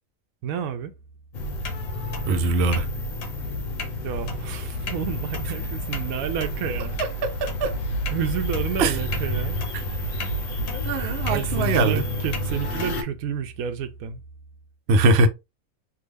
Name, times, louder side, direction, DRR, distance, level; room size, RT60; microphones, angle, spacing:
voice 1, 0.4-0.9 4.0-7.0 8.1-9.6 11.0-14.2, right 8 dB, 85° right, 1.0 m, -30 dB
sound 1, 1.3-13.0, left 1 dB, 70° left, 1.4 m, -29 dB
voice 2, 2.3-2.9 7.4-7.8 8.8-9.0 10.7-12.0 14.9-15.3, right 2 dB, 60° right, 0.8 m, -21 dB
3.6 x 2.3 x 3.2 m
omnidirectional pair, 1.4 m